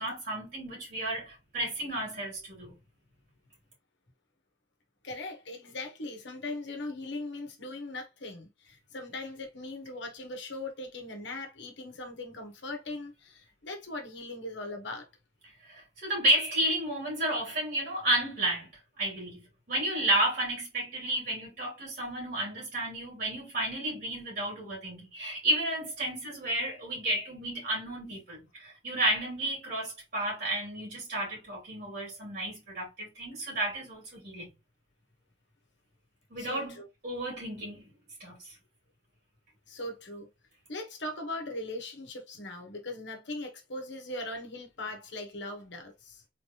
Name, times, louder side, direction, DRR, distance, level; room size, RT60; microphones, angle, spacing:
voice 1, 0.0-2.7 15.6-18.7 19.0-34.5 36.3-37.9 38.2-38.5, right 1 dB, 50° right, 2.5 m, -32 dB
voice 2, 5.0-15.1 36.4-36.9 39.7-40.3 40.7-46.2, left 2 dB, 60° left, 1.2 m, -39 dB
3.9 x 3.3 x 2.9 m
head